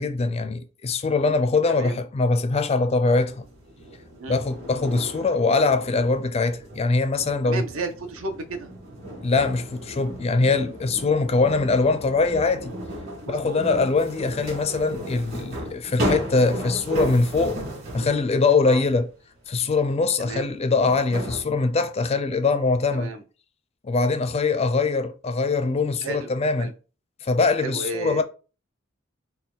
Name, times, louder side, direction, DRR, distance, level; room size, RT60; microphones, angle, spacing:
voice 1, 0.0-3.4 4.3-7.6 9.2-12.7 13.3-17.7 17.9-19.1 19.5-23.1 23.8-26.7 27.2-28.2, left 3 dB, 30° left, 0.4 m, -22 dB
voice 2, 1.7-2.0 4.2-4.4 7.4-8.7 13.2-13.6 18.6-18.8 20.2-20.5 22.9-23.2 26.0-26.3 26.6-26.7 27.6-28.2, right 3 dB, 75° right, 0.6 m, -33 dB
sound 1, 3.1-18.3 20.1-20.2 20.9-21.4, equal, 45° right, 1.8 m, -35 dB
4.0 x 2.2 x 3.7 m
head